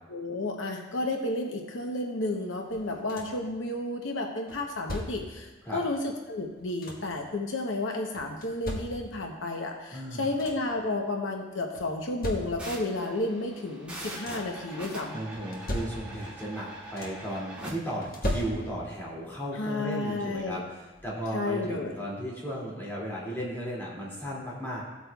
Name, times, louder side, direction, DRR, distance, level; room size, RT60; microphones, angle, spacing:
voice 1, 0.1-15.2 19.5-20.6 21.3-22.0, left 2 dB, 75° left, 2 dB, 0.9 m, -32 dB
sound 1, 2.7-3.5 4.5-5.4 6.4-7.2 8.1-9.3 9.9-10.0 10.2-10.8 11.7-12.9 13.8-14.6 15.3-16.4 16.6-17.4 18.0-19.0 20.3-20.4 20.9-21.1, left 1 dB, 50° left, 1.3 m, -38 dB
voice 2, 9.9-10.3 15.1-20.6 21.0-24.8, equal, 10° left, -6 dB, 2.5 m, -35 dB
sound 2, 12.6-17.7, right 1 dB, 5° right, 2.1 m, -42 dB
15.0 x 8.4 x 2.3 m, 1.2 s
head